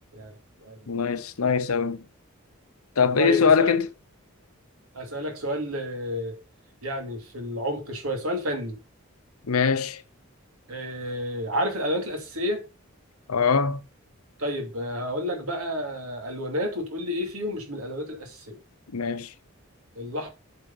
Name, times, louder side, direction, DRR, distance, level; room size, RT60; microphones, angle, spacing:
voice 1, 0.1-0.9 3.2-3.7 4.9-6.4 6.8-8.8 10.7-12.6 14.4-18.6 20.0-20.3, equal, 85° right, 2.6 m, -30 dB
voice 2, 0.9-2.0 3.0-3.9 9.5-10.0 13.3-13.8 18.9-19.3, left 5 dB, 85° left, 0.8 m, -22 dB
8.3 x 4.9 x 5.4 m
head